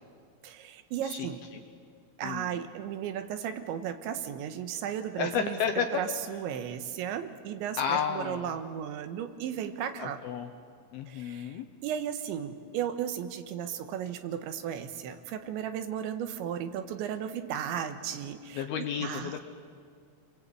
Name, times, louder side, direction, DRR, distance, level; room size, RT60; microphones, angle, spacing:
voice 1, 0.4-1.4 2.2-10.2 11.1-19.4, right 9 dB, 80° right, 8 dB, 3.3 m, -35 dB
voice 2, 5.2-6.0 7.8-8.4 10.0-10.5 10.9-11.7 18.6-19.4, left 7 dB, 75° left, 4 dB, 2.3 m, -31 dB
29.0 x 23.0 x 8.5 m, 2.2 s
omnidirectional pair, 5.5 m